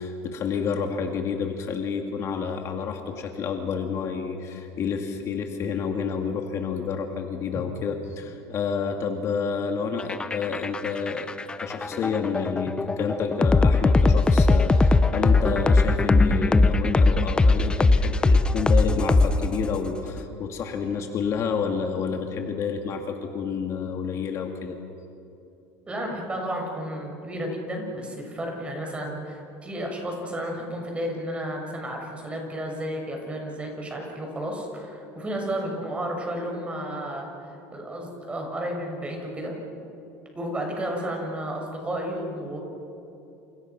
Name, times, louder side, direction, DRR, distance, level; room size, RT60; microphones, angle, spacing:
voice 1, 0.0-11.3 11.6-24.8, left 6 dB, 40° left, 4 dB, 2.2 m, -29 dB
sound 1, 10.0-19.8, left 3 dB, 10° left, 0.8 m, -20 dB
voice 2, 25.9-39.6 40.3-42.6, right 1 dB, 15° right, 1 dB, 6.9 m, -32 dB
29.5 x 29.0 x 6.1 m, 2.9 s
supercardioid pair, 135°, 8 cm